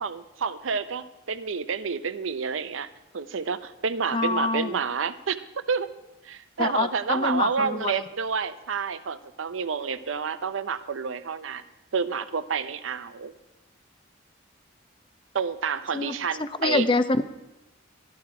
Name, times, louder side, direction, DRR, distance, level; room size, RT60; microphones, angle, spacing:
voice 1, 0.0-5.4 5.7-5.9 6.2-11.6 11.9-13.3 15.3-16.8, right 5 dB, 80° right, 12 dB, 0.6 m, -29 dB
voice 2, 4.1-4.7 6.6-7.9 15.9-17.2, left 3 dB, 25° left, 12 dB, 0.5 m, -25 dB
13.0 x 11.5 x 4.8 m, 0.98 s
head